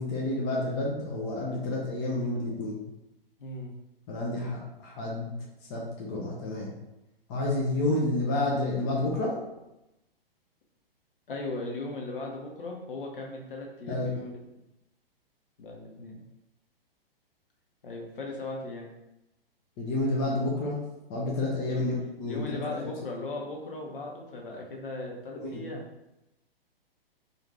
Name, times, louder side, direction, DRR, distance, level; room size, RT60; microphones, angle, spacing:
voice 1, 0.0-2.8 4.1-5.3 5.7-6.7 7.3-9.4 13.9-14.1 19.8-20.8 21.1-22.8 25.3-25.6, left 2 dB, 20° left, -3 dB, 0.4 m, -30 dB
voice 2, 3.4-3.7 11.3-14.4 15.6-16.2 17.8-18.9 21.7-21.9 22.3-25.9, left 2 dB, 60° left, 0 dB, 0.8 m, -38 dB
2.5 x 2.4 x 3.2 m, 0.91 s
figure-of-eight pair, 115°, 30 cm